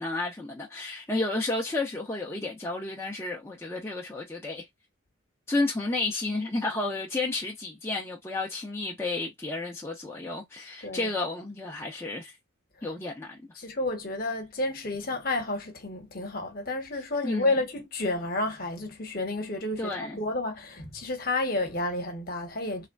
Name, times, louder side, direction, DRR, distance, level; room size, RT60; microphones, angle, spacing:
voice 1, 0.0-4.7 5.5-12.3 12.8-13.6 17.2-17.6 19.8-20.2, left 2 dB, 10° left, 0.5 m, -32 dB
voice 2, 13.6-22.9, left 2 dB, 45° left, 1.0 m, -31 dB
3.2 x 2.1 x 2.3 m
head